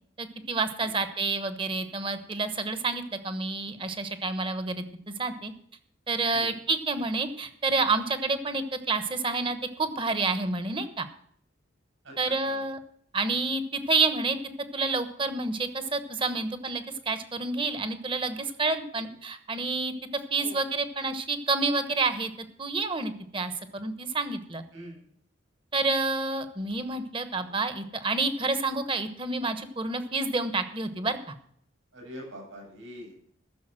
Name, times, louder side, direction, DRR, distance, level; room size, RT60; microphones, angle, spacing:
voice 1, 0.2-4.8 5.2-5.5 6.1-11.1 12.2-12.8 13.1-14.4 14.7-24.6 25.7-31.3, right 3 dB, 25° right, 10 dB, 1.1 m, -29 dB
voice 2, 12.0-12.6 18.9-19.1 20.4-20.6 24.7-25.0 27.4-27.6 31.9-33.1, equal, 80° right, 0 dB, 7.6 m, -44 dB
14.5 x 7.0 x 7.6 m, 0.64 s
head